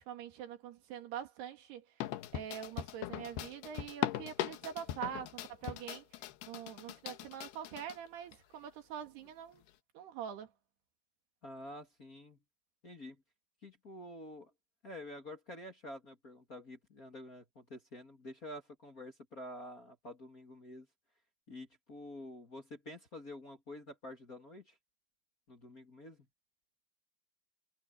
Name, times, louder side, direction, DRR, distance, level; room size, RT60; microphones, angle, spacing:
voice 1, 0.0-1.9 2.3-6.1 6.5-9.6 9.9-10.5, right 9 dB, 85° right, 4.2 m, -44 dB
sound 1, 2.0-8.0 8.3-8.4 9.3-9.4, left 13 dB, 85° left, 3.1 m, -41 dB
voice 2, 11.4-12.4 12.8-13.2 13.6-14.5 14.8-20.9 21.5-24.8 25.5-26.3, left 1 dB, 25° left, 2.2 m, -48 dB
omnidirectional pair, 4.6 m